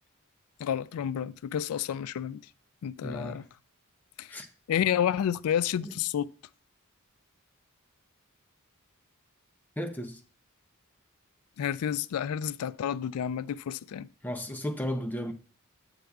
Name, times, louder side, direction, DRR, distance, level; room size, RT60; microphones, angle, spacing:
voice 1, 0.6-2.4 2.8-3.4 4.2-4.3 4.7-6.3 11.6-14.1, left 9 dB, 75° left, 0.3 m, -30 dB
voice 2, 3.0-3.5 4.3-4.5 5.8-5.9 9.8-10.2 14.2-15.3, equal, 10° left, 0.7 m, -34 dB
8.0 x 7.6 x 2.3 m
head